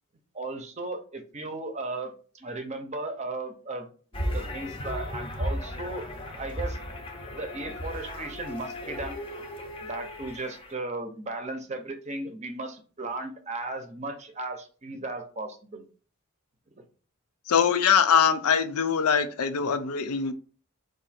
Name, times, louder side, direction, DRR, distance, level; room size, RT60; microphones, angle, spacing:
voice 1, 0.3-3.9 4.3-6.1 6.4-6.8 7.4-9.2 9.8-15.8 16.8-16.9, right 2 dB, 30° right, 6 dB, 0.7 m, -36 dB
sound 1, 4.1-10.7, equal, 25° left, 0.7 m, -35 dB
voice 2, 17.5-20.3, left 7 dB, 90° left, 10 dB, 0.5 m, -22 dB
4.8 x 2.6 x 4.2 m, 0.39 s
head